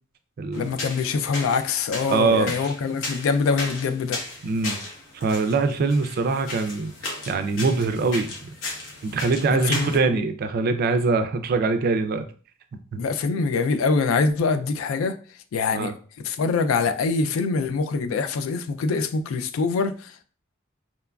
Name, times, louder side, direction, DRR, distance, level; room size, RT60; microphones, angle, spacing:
voice 1, 0.5-4.2 9.5-10.3 13.0-15.2 15.5-20.2, left 4 dB, 85° left, 0.3 m, -24 dB
sound 1, 0.5-10.0, left 2 dB, 65° left, 0.8 m, -36 dB
voice 2, 2.1-2.6 4.4-4.8 5.1-8.5 9.0-12.2 12.9-13.0 15.7-15.9, right 4 dB, 50° right, 0.3 m, -23 dB
2.9 x 2.3 x 2.2 m
head